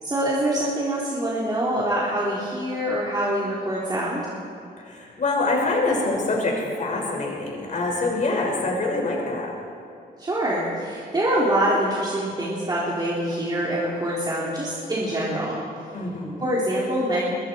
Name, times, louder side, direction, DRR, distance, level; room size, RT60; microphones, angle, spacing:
voice 1, 0.0-4.2 10.2-15.6 16.4-17.2, right 1 dB, 25° right, -7 dB, 3.9 m, -25 dB
voice 2, 4.8-9.5 15.9-16.4, left 2 dB, 45° left, -1 dB, 6.0 m, -25 dB
25.5 x 21.5 x 4.7 m, 2.6 s
wide cardioid pair, 140°, 17 cm